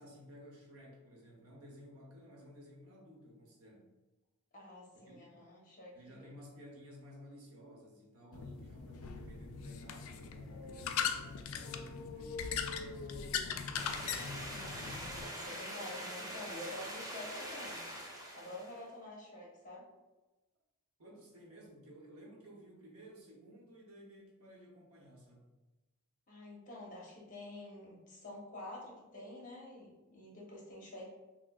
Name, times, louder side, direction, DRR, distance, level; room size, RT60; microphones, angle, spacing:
voice 1, 0.0-3.8 5.0-5.2 5.9-13.8 21.0-25.5, equal, 85° right, -2 dB, 0.9 m, -55 dB
voice 2, 4.5-6.3 14.4-17.9 18.3-19.9 26.3-31.1, left 1 dB, 35° left, -4 dB, 0.9 m, -48 dB
sound 1, 8.3-15.2, left 7 dB, 70° left, 0.3 m, -40 dB
sound 2, 13.8-18.8, equal, 15° right, 0.6 m, -44 dB
5.8 x 2.1 x 2.3 m, 1.1 s
head